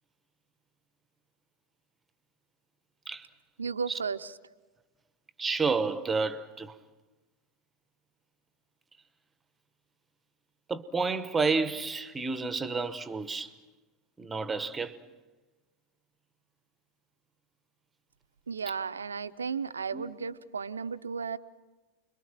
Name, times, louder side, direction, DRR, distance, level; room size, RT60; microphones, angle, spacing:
voice 1, 3.6-4.3 18.5-21.4, right 5 dB, 75° right, 0.7 m, -34 dB
voice 2, 5.4-6.7 10.7-13.5 14.2-15.0 19.9-20.1, right 4 dB, 15° right, 1.1 m, -30 dB
30.0 x 22.5 x 5.9 m
figure-of-eight pair, 90°, 0 cm